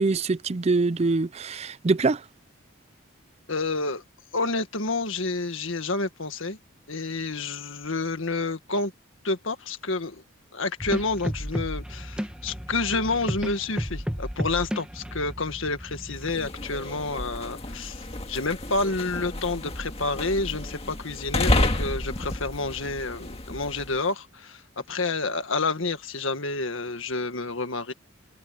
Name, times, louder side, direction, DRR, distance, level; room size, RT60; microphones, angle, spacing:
voice 1, 0.0-2.2, right 3 dB, 30° right, 0.4 m, -24 dB
voice 2, 3.5-4.0 4.3-6.6 6.9-8.9 9.2-10.2 10.5-24.6 24.9-27.9, left 3 dB, 65° left, 1.8 m, -29 dB
sound 1, 10.8-16.5, equal, 5° right, 1.1 m, -33 dB
sound 2, 16.2-24.0, left 1 dB, 30° left, 2.1 m, -30 dB
head